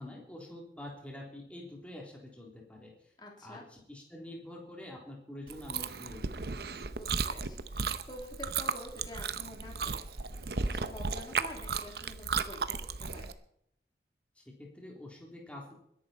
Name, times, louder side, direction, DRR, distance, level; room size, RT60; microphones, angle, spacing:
voice 1, 0.0-3.1 3.4-6.6 14.4-15.7, left 1 dB, 5° left, -1 dB, 3.5 m, -46 dB
voice 2, 3.2-3.6 6.9-13.3, left 1 dB, 25° left, 0 dB, 3.4 m, -48 dB
Chewing mastication, 5.5-13.3, right 5 dB, 60° right, 0.9 m, -35 dB
21.5 x 11.0 x 4.5 m, 0.73 s
head